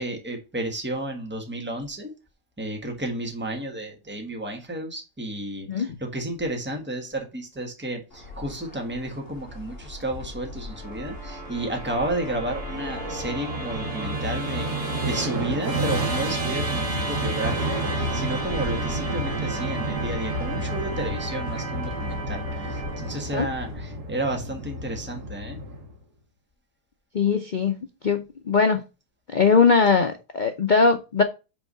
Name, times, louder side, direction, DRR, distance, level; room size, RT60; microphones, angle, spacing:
voice 1, 0.0-2.1 2.6-25.6, right 1 dB, 5° right, 1.3 m, -32 dB
sound 1, 8.1-23.7, left 2 dB, 35° left, 2.6 m, -42 dB
Musical instrument, 10.7-26.0, right 2 dB, 70° right, 2.2 m, -30 dB
voice 2, 27.1-27.8 28.0-28.8 29.3-31.2, left 5 dB, 80° left, 0.4 m, -20 dB
6.0 x 4.6 x 5.4 m
omnidirectional pair, 1.7 m